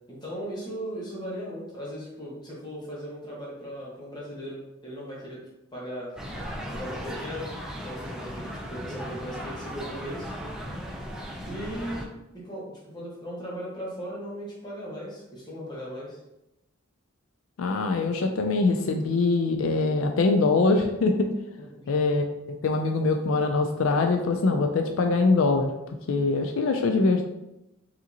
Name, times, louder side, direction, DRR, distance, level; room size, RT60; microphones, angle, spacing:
voice 1, 0.1-5.4 5.7-6.1 6.7-7.5 7.8-10.3 11.4-12.1 12.3-16.2 21.8-21.9, equal, 20° left, -6 dB, 1.2 m, -37 dB
sound 1, 6.2-12.1, equal, 5° right, 0.4 m, -37 dB
voice 2, 17.6-21.3 21.9-27.2, left 3 dB, 80° left, 4 dB, 0.4 m, -23 dB
5.0 x 2.8 x 2.7 m, 0.90 s
head